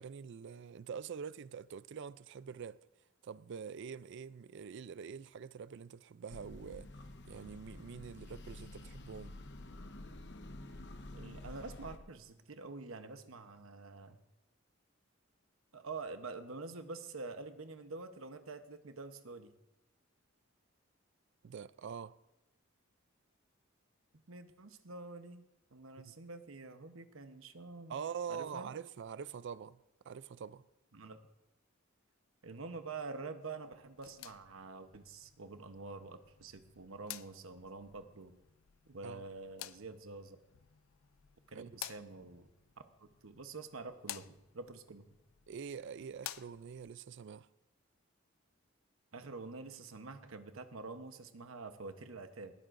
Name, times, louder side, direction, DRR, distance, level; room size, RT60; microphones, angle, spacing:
voice 1, 0.0-2.8 3.2-6.9 7.3-9.4 21.4-22.2 26.0-26.1 27.9-29.8 30.0-30.6 39.0-39.2 41.5-41.7 45.5-47.5, right 7 dB, 60° right, 0.4 m, -45 dB
sound 1, 6.3-12.0, left 1 dB, 60° left, 0.9 m, -49 dB
voice 2, 11.1-14.2 15.7-19.5 24.3-25.4 25.7-28.0 28.3-28.7 30.9-31.2 32.4-38.3 38.9-40.4 41.5-42.5 42.8-45.1 49.1-52.5, right 3 dB, 80° right, 1.0 m, -47 dB
sound 2, 33.9-46.9, left 13 dB, 90° left, 0.5 m, -52 dB
19.0 x 13.5 x 2.6 m
head